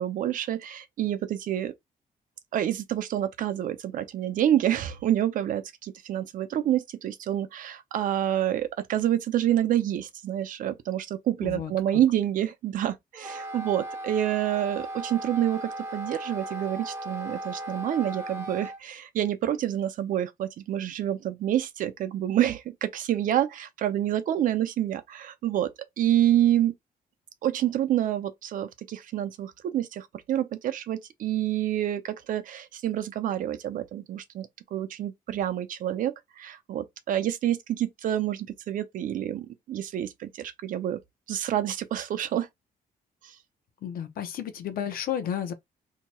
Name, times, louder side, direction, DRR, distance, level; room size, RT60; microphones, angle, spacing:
voice 1, 0.0-1.7 2.5-25.7 26.0-26.7 27.4-41.0 41.3-42.5 43.2-43.3, right 11 dB, 60° right, 0.5 m, -28 dB
Wind instrument woodwind instrument, 13.1-18.8, right 1 dB, 15° right, 0.8 m, -37 dB
voice 2, 43.8-45.5, left 9 dB, 70° left, 0.7 m, -32 dB
2.8 x 2.3 x 4.1 m
cardioid pair, 175°, 16 cm